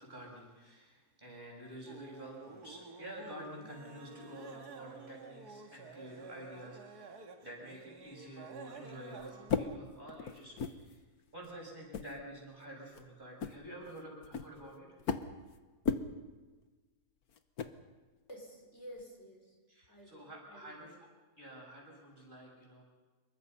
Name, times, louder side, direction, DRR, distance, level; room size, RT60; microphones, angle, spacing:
voice 1, 0.0-11.0 11.3-14.9 19.7-21.0 21.4-22.8, right 1 dB, 30° right, -1 dB, 6.9 m, -49 dB
sound 1, 1.9-9.8, right 4 dB, 80° right, 2.3 m, -51 dB
sound 2, 8.7-8.8 9.2-11.0 11.4-11.5 11.9-12.2 12.6-12.7 12.9-13.1 13.4-15.6 15.8-16.1 17.3-17.8 19.0-19.1, left 6 dB, 70° left, 1.6 m, -37 dB
voice 2, 18.3-19.6 19.9-20.7, equal, 45° left, 0 dB, 5.3 m, -51 dB
27.0 x 23.0 x 5.6 m, 1.3 s
omnidirectional pair, 1.7 m